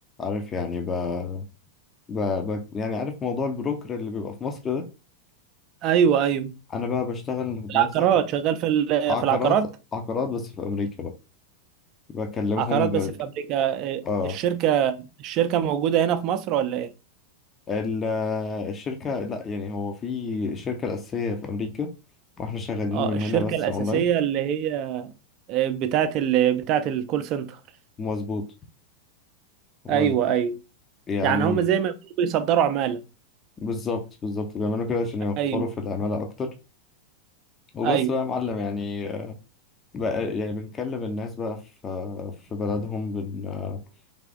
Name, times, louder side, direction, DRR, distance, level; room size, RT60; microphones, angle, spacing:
voice 1, 0.2-1.4 2.1-4.9 6.7-7.9 9.1-9.6 9.9-11.1 12.1-13.1 14.0-14.4 17.7-21.9 22.4-24.0 28.0-28.5 29.8-30.2 31.1-31.6 33.6-36.5 37.7-39.3 39.9-43.8, left 4 dB, 20° left, 0.7 m, -29 dB
voice 2, 5.8-6.5 7.7-9.7 12.6-16.9 22.9-25.1 25.5-27.6 29.9-30.6 31.2-33.0 35.4-35.7 37.8-38.1, right 9 dB, 40° right, 0.5 m, -23 dB
3.5 x 3.2 x 3.8 m
figure-of-eight pair, 90°, 0 cm